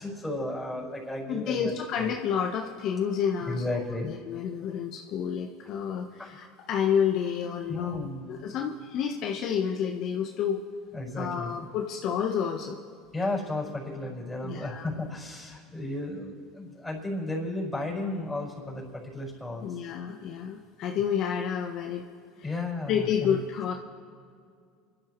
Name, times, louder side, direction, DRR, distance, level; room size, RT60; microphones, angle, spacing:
voice 1, 0.0-2.1 3.5-4.1 6.2-6.4 7.7-8.4 10.9-11.5 13.1-19.8 22.4-23.4, left 2 dB, 5° left, -4 dB, 5.0 m, -34 dB
voice 2, 1.3-3.6 4.0-10.6 11.2-12.8 14.4-14.9 19.6-22.1 22.4-22.5 22.9-23.7, left 8 dB, 55° left, 2 dB, 1.0 m, -30 dB
30.0 x 12.0 x 3.1 m, 2.2 s
supercardioid pair, 95°, 0 cm